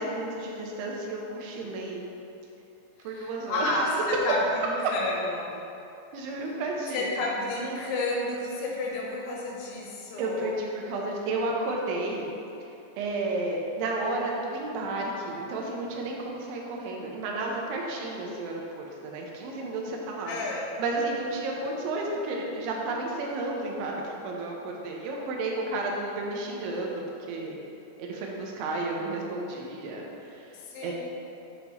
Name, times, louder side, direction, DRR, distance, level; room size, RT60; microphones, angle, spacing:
voice 1, 0.0-2.0 3.0-4.0 6.1-7.1 10.2-12.3 12.6-20.3 20.8-26.9 27.3-27.6 28.0-30.5 30.8-30.9, right 2 dB, 80° right, -1 dB, 3.2 m, -32 dB
voice 2, 3.0-5.5 6.9-10.5 20.2-20.7 30.5-30.9, left 2 dB, 80° left, -2 dB, 3.2 m, -31 dB
7.8 x 7.3 x 3.0 m, 2.9 s
omnidirectional pair, 5.4 m